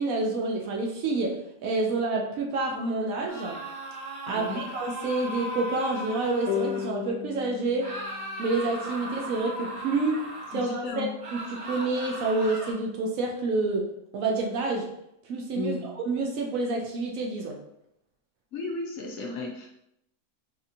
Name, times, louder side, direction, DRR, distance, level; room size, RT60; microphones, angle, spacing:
voice 1, 0.0-1.3 1.6-3.6 4.3-7.9 8.4-10.2 10.5-13.9 14.1-14.9 15.3-17.6, right 3 dB, 70° right, 0 dB, 0.9 m, -28 dB
sound 1, 3.3-6.9 7.8-10.7 11.2-12.7, equal, 50° right, 0.4 m, -37 dB
voice 2, 4.3-4.7 10.5-11.1 15.5-15.8 18.5-19.7, left 3 dB, 65° left, 0 dB, 1.0 m, -34 dB
sound 2, 6.5-9.7, left 10 dB, 85° left, 0.5 m, -36 dB
4.2 x 2.6 x 2.6 m, 0.79 s
omnidirectional pair, 1.7 m